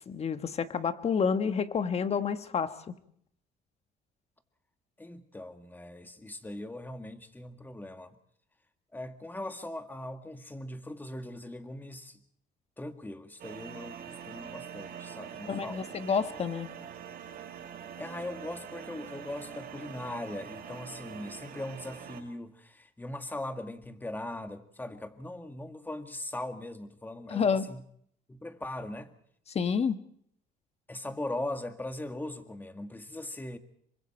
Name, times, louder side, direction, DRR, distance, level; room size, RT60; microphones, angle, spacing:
voice 1, 0.1-2.9 15.4-16.7 27.3-27.7 29.5-30.0, left 6 dB, 40° left, 10 dB, 1.4 m, -29 dB
voice 2, 5.0-8.2 8.9-12.2 12.8-15.8 18.0-27.8 28.3-29.1 30.9-33.6, left 1 dB, 10° left, 7 dB, 1.9 m, -40 dB
sound 1, 13.4-22.2, right 8 dB, 60° right, 4.4 m, -44 dB
27.0 x 23.5 x 4.5 m, 0.67 s
cardioid pair, 110°, 17 cm